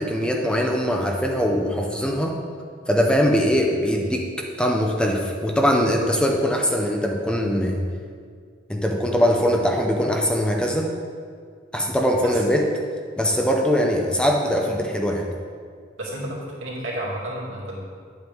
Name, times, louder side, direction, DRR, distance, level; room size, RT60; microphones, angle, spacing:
voice 1, 0.0-2.4 2.9-7.8 8.7-10.9 11.7-12.7 13.2-15.3, equal, 5° left, 1 dB, 0.6 m, -22 dB
voice 2, 16.0-17.8, right 1 dB, 80° right, -5 dB, 2.6 m, -31 dB
9.7 x 8.1 x 3.5 m, 2.1 s
head